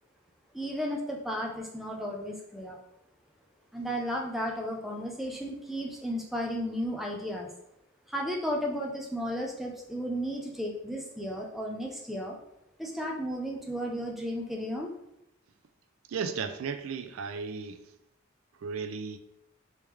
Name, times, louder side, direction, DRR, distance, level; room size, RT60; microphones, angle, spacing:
voice 1, 0.5-2.8 3.7-7.5 8.1-12.4 12.8-14.9, equal, ahead, 0.4 m, -34 dB
voice 2, 16.1-17.8 18.6-19.2, right 5 dB, 90° right, 0.4 m, -35 dB
3.4 x 3.2 x 3.2 m
head